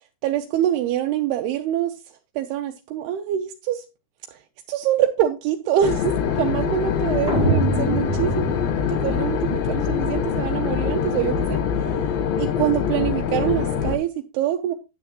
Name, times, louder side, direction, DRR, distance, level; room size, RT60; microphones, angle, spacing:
voice 1, 0.2-2.0 2.4-3.8 4.3-4.4 4.7-8.3 8.9-11.9 12.4-14.7, right 11 dB, 85° right, 2.7 m, -25 dB
sound 1, 5.8-14.0, left 7 dB, 75° left, 2.6 m, -24 dB
sound 2, 7.3-9.4, right 2 dB, 15° left, 2.9 m, -25 dB
9.5 x 9.4 x 2.9 m
omnidirectional pair, 4.5 m